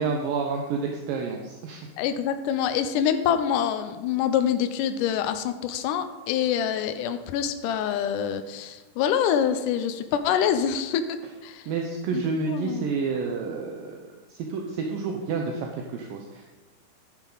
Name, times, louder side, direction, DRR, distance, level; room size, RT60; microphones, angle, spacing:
voice 1, 0.0-1.9 11.7-16.5, right 4 dB, 75° right, 2 dB, 2.4 m, -29 dB
voice 2, 2.0-11.7 12.1-12.2 12.5-12.9, left 9 dB, 90° left, 9 dB, 1.8 m, -26 dB
10.5 x 9.3 x 3.9 m, 1.2 s
omnidirectional pair, 4.3 m